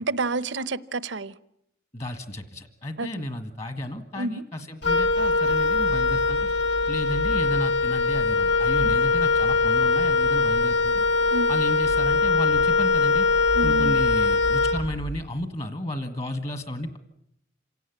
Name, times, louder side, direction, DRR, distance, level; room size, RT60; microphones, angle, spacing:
voice 1, 0.0-1.3 3.0-3.1 4.1-4.4 8.8-9.0 11.3-11.5 13.5-14.0, right 2 dB, 80° right, 18 dB, 0.9 m, -29 dB
voice 2, 1.9-6.5 6.9-11.0 11.5-13.3 13.6-17.0, left 1 dB, 35° left, 10 dB, 1.8 m, -32 dB
Wind instrument woodwind instrument, 4.8-15.3, left 4 dB, 75° left, 2.2 m, -22 dB
27.5 x 17.5 x 9.4 m, 0.77 s
head